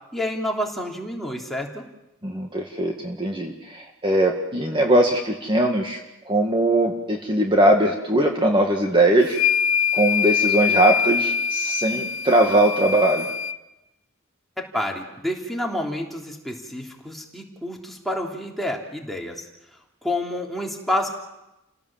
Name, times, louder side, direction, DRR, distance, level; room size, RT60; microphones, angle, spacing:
voice 1, 0.1-1.9 14.7-19.4 20.0-21.1, left 1 dB, ahead, -1 dB, 3.2 m, -29 dB
voice 2, 2.2-6.0 6.3-9.4 9.9-13.3, right 1 dB, 25° right, 2 dB, 1.9 m, -20 dB
sound 1, 9.3-13.6, left 7 dB, 85° left, 0.9 m, -23 dB
30.0 x 17.5 x 7.4 m, 0.95 s
head